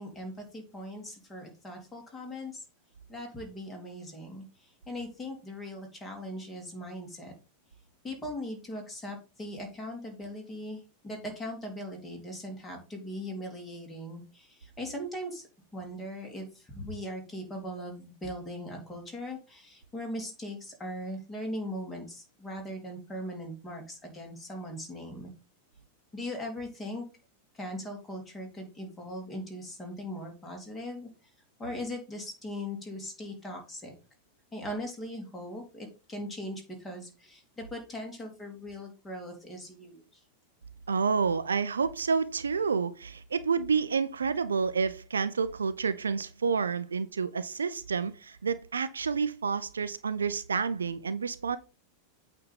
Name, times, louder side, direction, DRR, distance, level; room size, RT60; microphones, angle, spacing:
voice 1, 0.0-2.6 3.1-4.4 4.9-7.3 8.0-15.5 15.7-25.3 26.1-27.0 27.5-31.1 31.6-33.9 34.5-40.0, equal, 15° left, 3.0 m, -39 dB
voice 2, 40.9-51.6, right 5 dB, 70° right, 0.5 m, -29 dB
8.5 x 3.5 x 5.5 m
figure-of-eight pair, 90°, 0 cm